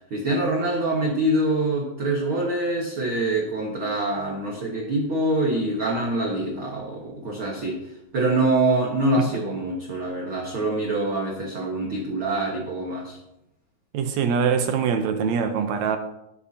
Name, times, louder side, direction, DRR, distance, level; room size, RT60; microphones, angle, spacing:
voice 1, 0.1-7.8 8.1-13.2, right 2 dB, 50° right, 1.7 m, -25 dB
voice 2, 13.9-16.0, right 6 dB, 75° right, 1.7 m, -23 dB
19.0 x 7.9 x 2.8 m
omnidirectional pair, 3.9 m